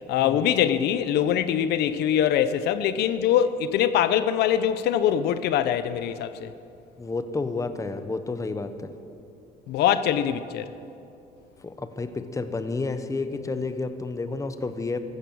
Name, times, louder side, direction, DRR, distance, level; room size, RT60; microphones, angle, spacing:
voice 1, 0.1-6.5 9.7-10.7, left 10 dB, 75° left, 0.6 m, -23 dB
voice 2, 7.0-8.9 11.6-15.0, left 3 dB, 20° left, 1.0 m, -30 dB
15.5 x 14.0 x 6.3 m
cardioid pair, 110°, 17 cm